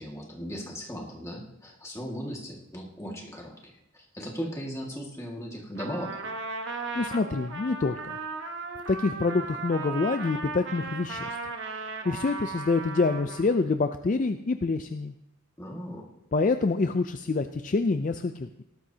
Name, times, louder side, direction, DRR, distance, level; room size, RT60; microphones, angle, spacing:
voice 1, 0.0-6.1 15.6-16.1, equal, 15° left, -1 dB, 1.8 m, -37 dB
Trumpet, 5.8-13.6, right 3 dB, 55° right, 1.2 m, -36 dB
voice 2, 6.9-8.2 8.9-11.4 12.0-15.1 16.3-18.5, left 3 dB, 35° left, 8 dB, 0.4 m, -26 dB
18.5 x 12.5 x 2.8 m, 0.89 s
head